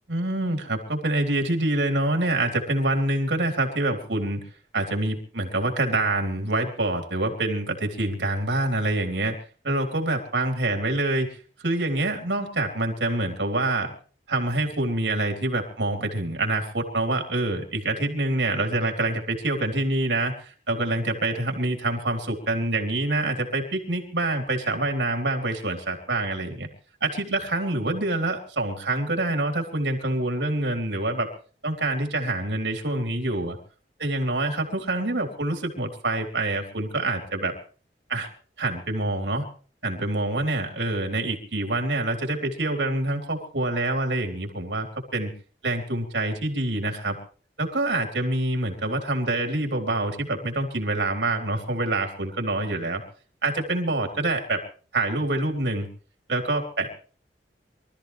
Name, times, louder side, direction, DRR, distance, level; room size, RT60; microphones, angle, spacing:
voice 1, 0.1-4.4 4.7-9.3 9.6-11.3 11.6-13.9 14.3-26.7 27.0-31.3 31.6-33.6 34.0-37.5 38.1-38.3 38.6-39.5 39.8-44.9 45.1-45.3 45.6-47.2 47.6-53.0 53.4-54.6 54.9-55.9 56.3-56.9, right 2 dB, 80° right, 3 dB, 3.7 m, -26 dB
24.5 x 14.0 x 3.4 m, 0.39 s
head